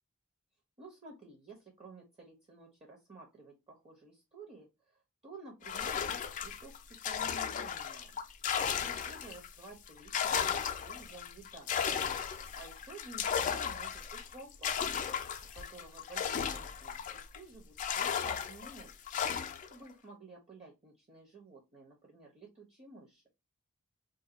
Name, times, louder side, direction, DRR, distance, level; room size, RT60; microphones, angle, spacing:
voice 1, 0.8-4.9 5.2-8.1 8.7-11.8 12.6-14.8 15.5-19.1 19.7-23.2, right 3 dB, 30° right, -1 dB, 0.8 m, -52 dB
sound 1, 5.6-9.5 9.9-17.4 17.8-19.7, left 7 dB, 35° left, 0.3 m, -35 dB
2.7 x 2.2 x 3.8 m, 0.24 s
head